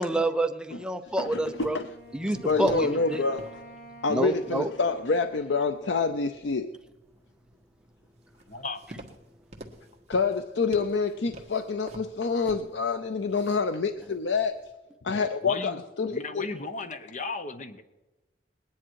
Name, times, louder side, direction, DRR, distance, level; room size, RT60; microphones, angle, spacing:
voice 1, 0.0-1.8 2.1-3.2 4.1-4.7, right 1 dB, 5° right, 7 dB, 0.7 m, -28 dB
sound 1, 1.0-14.7, right 1 dB, 40° right, 1.5 m, -50 dB
Wind instrument woodwind instrument, 1.1-6.6, right 1 dB, 65° left, 2.4 m, -50 dB
voice 2, 2.5-3.4 4.0-6.7 10.1-14.6 15.0-16.4, left 4 dB, 90° left, 9 dB, 0.6 m, -27 dB
voice 3, 8.5-8.8 10.5-10.6 15.4-15.8 16.1-17.8, left 3 dB, 45° left, 9 dB, 1.0 m, -35 dB
20.5 x 10.0 x 4.7 m, 1.1 s
head